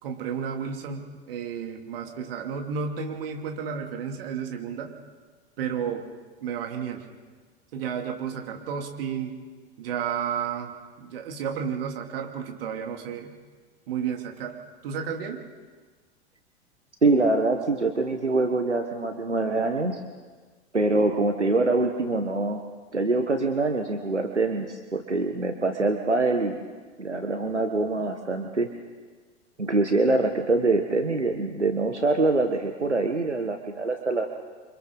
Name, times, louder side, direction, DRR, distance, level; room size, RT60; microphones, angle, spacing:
voice 1, 0.0-4.9 5.6-6.1 6.4-7.1 7.7-9.4 9.8-13.3 13.9-14.6 14.8-15.4, right 7 dB, 55° right, 2 dB, 2.9 m, -32 dB
voice 2, 17.0-20.0 20.7-22.6 22.9-26.6 27.0-28.7 29.6-34.3, right 3 dB, 85° right, 5 dB, 1.4 m, -24 dB
29.0 x 25.5 x 4.0 m, 1.4 s
figure-of-eight pair, 90°, 34 cm